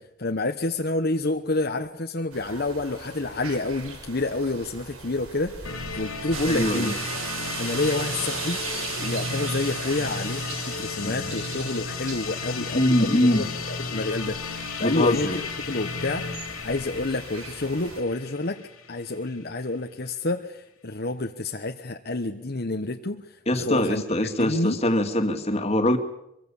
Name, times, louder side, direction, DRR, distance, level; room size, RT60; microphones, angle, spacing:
voice 1, 0.0-6.9 7.6-8.6 9.0-16.3 16.6-24.0 24.4-24.8, left 2 dB, 45° left, 4 dB, 1.1 m, -29 dB
sound 1, 2.3-18.0, right 3 dB, 90° right, 5.1 m, -42 dB
sound 2, 5.6-19.4, left 4 dB, 85° left, 3.1 m, -34 dB
sound 3, 6.3-11.5, right 7 dB, 75° right, 1.9 m, -35 dB
voice 2, 6.5-6.9 11.0-11.3 12.7-13.4 14.8-15.4 23.5-26.0, left 1 dB, 30° left, 6 dB, 2.2 m, -23 dB
24.0 x 24.0 x 7.2 m, 0.84 s
head